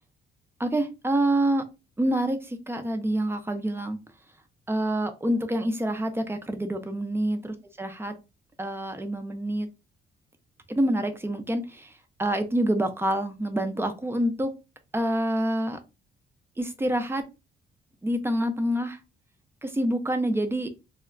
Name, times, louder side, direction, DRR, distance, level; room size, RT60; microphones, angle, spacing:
voice 1, 0.6-1.6 2.0-4.0 4.7-8.1 8.6-9.7 10.7-11.9 12.2-14.5 14.9-15.8 16.6-17.2 18.0-19.0 19.6-20.7, right 1 dB, 10° right, 7 dB, 0.5 m, -27 dB
2.2 x 2.1 x 3.6 m, 0.27 s
cardioid pair, 90°, 20 cm